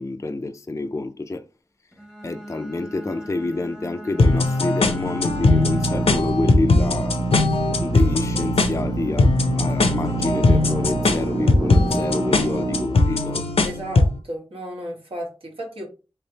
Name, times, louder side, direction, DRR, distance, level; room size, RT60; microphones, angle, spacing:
voice 1, 0.0-1.4 2.2-7.2 7.8-13.5, left 2 dB, 30° left, 0.4 m, -28 dB
Bowed string instrument, 1.9-6.4, right 1 dB, 5° right, 0.9 m, -40 dB
sound 1, 4.2-14.2, left 2 dB, 80° left, 0.6 m, -20 dB
Drill, 5.1-13.8, right 3 dB, 50° right, 0.5 m, -27 dB
voice 2, 13.6-15.9, right 1 dB, 75° right, 1.4 m, -33 dB
3.4 x 3.3 x 2.8 m
wide cardioid pair, 60°, 10 cm